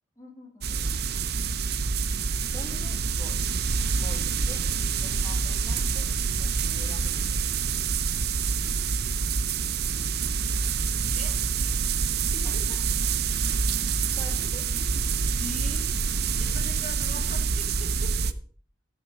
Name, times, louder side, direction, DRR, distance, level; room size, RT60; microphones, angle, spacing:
voice 1, 0.2-1.4 2.4-3.4 3.9-7.4 12.4-12.8 13.7-15.0, left 1 dB, 20° left, 0 dB, 2.5 m, -47 dB
sound 1, 0.6-18.3, right 5 dB, 60° right, 0.6 m, -27 dB
voice 2, 11.1-11.9 12.3-12.7 15.4-15.9 16.3-18.4, left 2 dB, 45° left, 3 dB, 2.4 m, -42 dB
12.5 x 6.4 x 5.3 m, 0.43 s
head